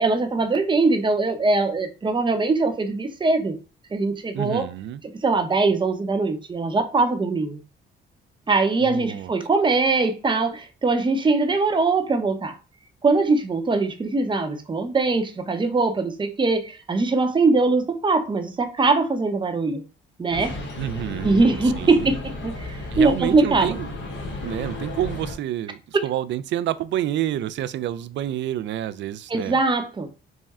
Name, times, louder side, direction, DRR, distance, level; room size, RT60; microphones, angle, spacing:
voice 1, 0.0-3.6 3.9-4.6 5.2-7.6 8.5-12.5 13.0-19.8 20.2-20.5 21.2-23.8 25.9-26.0 29.3-30.1, right 3 dB, 25° right, 0.7 m, -22 dB
voice 2, 4.3-5.0 8.8-9.3 20.8-21.5 21.8-22.2 22.9-23.9 24.4-29.6, right 12 dB, 65° right, 0.4 m, -28 dB
sound 1, 20.3-25.4, left 2 dB, 65° left, 1.3 m, -33 dB
3.6 x 2.1 x 4.1 m
cardioid pair, 90°, 20 cm